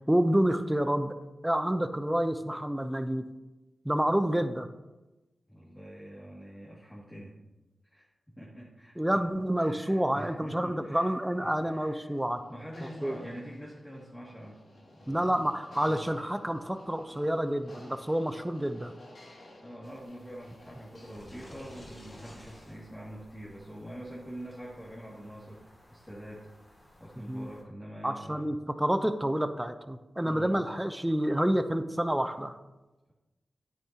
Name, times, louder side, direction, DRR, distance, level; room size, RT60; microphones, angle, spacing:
voice 1, 0.1-1.1 1.4-3.2 3.8-4.7 9.0-12.4 13.0-13.2 15.1-18.9 27.3-27.5 28.0-32.5, right 1 dB, 10° right, 10 dB, 0.7 m, -28 dB
voice 2, 5.5-7.3 7.8-9.2 9.6-11.1 11.4-12.1 12.4-14.6 14.9-15.4 15.8-16.0 19.6-26.5 27.0-28.5 30.2-30.6, equal, 10° left, -6 dB, 2.3 m, -45 dB
sound 1, 9.5-21.9, left 1 dB, 65° left, 2.5 m, -55 dB
sound 2, 19.8-27.6, left 1 dB, 35° left, 2.4 m, -54 dB
9.6 x 8.6 x 2.9 m, 1.1 s
cardioid pair, 40°, 0 cm